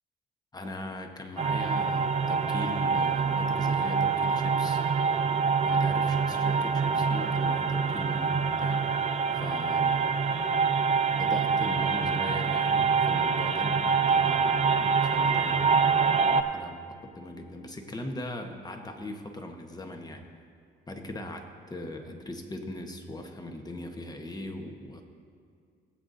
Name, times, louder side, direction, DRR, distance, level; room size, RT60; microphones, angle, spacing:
voice 1, 0.5-4.8 5.6-8.9 9.3-10.1 11.2-20.2 20.9-25.0, left 1 dB, 20° left, 4 dB, 1.1 m, -40 dB
sound 1, 1.4-16.4, right 5 dB, 35° right, 0.6 m, -25 dB
19.5 x 8.0 x 2.7 m, 2.2 s
cardioid pair, 90°, 20 cm